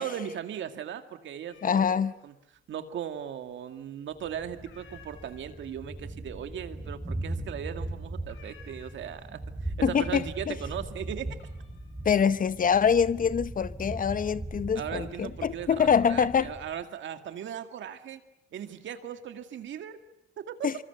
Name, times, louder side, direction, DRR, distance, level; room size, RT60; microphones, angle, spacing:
voice 1, 0.0-2.0 2.2-2.3 2.7-11.3 14.8-18.2 18.5-20.0 20.4-20.5, right 9 dB, 70° right, 2.2 m, -38 dB
sound 1, 1.5-2.3 2.6-3.4 3.7-4.1 4.4-9.5 9.9-10.4 10.7-13.9 14.4-15.0, left 5 dB, 75° left, 5.9 m, -57 dB
voice 2, 1.6-2.2 9.8-10.6 12.0-16.5 20.6-20.8, left 7 dB, 45° left, 0.9 m, -25 dB
Thunder, 4.2-16.8, right 1 dB, 10° right, 4.7 m, -39 dB
25.5 x 24.5 x 8.1 m
cardioid pair, 90°, 20 cm